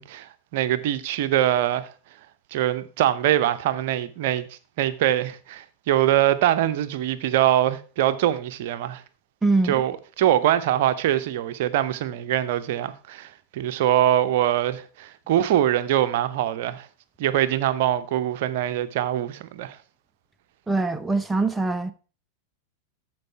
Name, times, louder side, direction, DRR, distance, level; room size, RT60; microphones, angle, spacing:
voice 1, 0.0-1.9 2.5-4.5 4.8-9.0 9.6-16.9 17.2-19.8, right 12 dB, 50° right, 0.7 m, -23 dB
voice 2, 9.4-9.7 20.7-21.9, right 3 dB, 10° right, 0.7 m, -23 dB
13.0 x 4.8 x 4.5 m
figure-of-eight pair, 90°, 0 cm